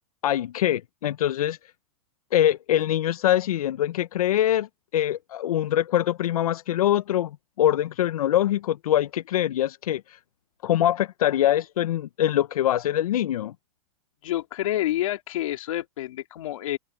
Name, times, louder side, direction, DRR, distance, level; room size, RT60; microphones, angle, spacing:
voice 1, 0.2-1.6 2.3-10.2 10.6-13.5, left 12 dB, 90° left, 0.6 m, -24 dB
voice 2, 14.2-16.8, left 13 dB, 65° left, 2.9 m, -28 dB
supercardioid pair, 160°, 18 cm